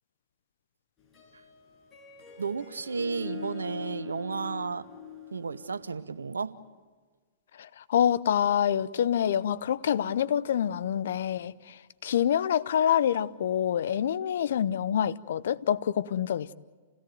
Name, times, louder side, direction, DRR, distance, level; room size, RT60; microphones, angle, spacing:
Harp, 1.0-6.5, left 8 dB, 25° left, 6.9 m, -44 dB
voice 1, 2.4-4.9 5.3-6.6, right 5 dB, 80° right, 0.8 m, -33 dB
voice 2, 7.6-16.5, left 9 dB, 65° left, 0.7 m, -26 dB
29.0 x 17.0 x 9.2 m
figure-of-eight pair, 105°, 0 cm